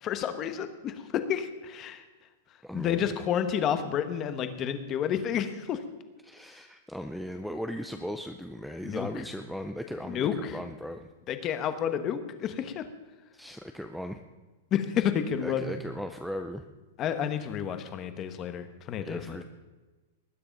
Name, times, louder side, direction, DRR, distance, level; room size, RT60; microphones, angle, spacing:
voice 1, 0.0-2.0 2.7-5.8 8.8-9.1 10.1-10.6 11.3-12.9 14.7-15.7 17.0-19.4, left 9 dB, 20° left, 9 dB, 1.0 m, -30 dB
voice 2, 2.6-3.1 6.2-11.1 13.3-14.2 15.4-16.7 19.0-19.4, equal, ahead, 5 dB, 0.5 m, -37 dB
19.5 x 9.7 x 5.2 m, 1.2 s
supercardioid pair, 175°, 0 cm